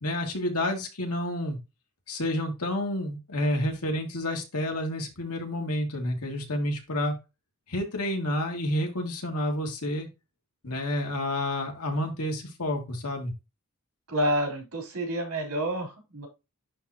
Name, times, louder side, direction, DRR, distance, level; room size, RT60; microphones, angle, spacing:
voice 1, 0.0-1.6 2.1-7.1 7.7-10.1 10.6-13.3, left 1 dB, 85° left, 2 dB, 2.3 m, -29 dB
voice 2, 14.1-16.3, equal, 70° right, 2 dB, 3.8 m, -29 dB
11.0 x 3.8 x 2.9 m, 0.25 s
head